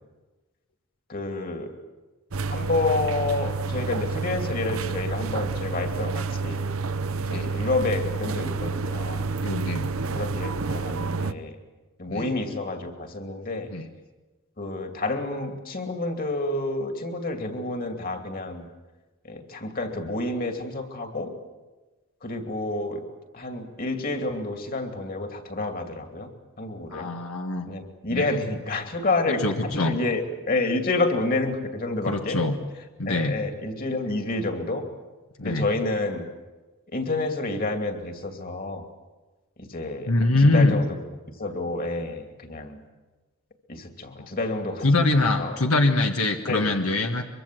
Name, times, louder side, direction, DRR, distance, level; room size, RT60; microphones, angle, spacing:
voice 1, 1.1-1.7 2.5-6.6 7.2-9.3 10.1-11.6 12.0-13.7 14.6-18.7 19.2-21.3 22.2-23.0 23.3-26.3 26.6-27.1 27.7-32.4 33.1-34.8 35.4-36.3 36.9-38.9 39.6-40.1 40.5-40.9 41.4-42.8 43.7-45.0 45.4-45.6 46.5-46.6, left 2 dB, 40° left, 5 dB, 2.6 m, -29 dB
sound 1, 2.3-11.3, right 4 dB, 75° right, 0.8 m, -29 dB
voice 2, 9.4-9.9 12.1-12.3 13.7-13.9 26.9-27.7 28.1-28.4 29.4-30.0 32.0-32.6 33.0-33.4 35.4-35.7 40.1-40.8 44.8-47.2, left 2 dB, 80° left, 3 dB, 1.5 m, -23 dB
23.5 x 23.5 x 7.7 m, 1.2 s
head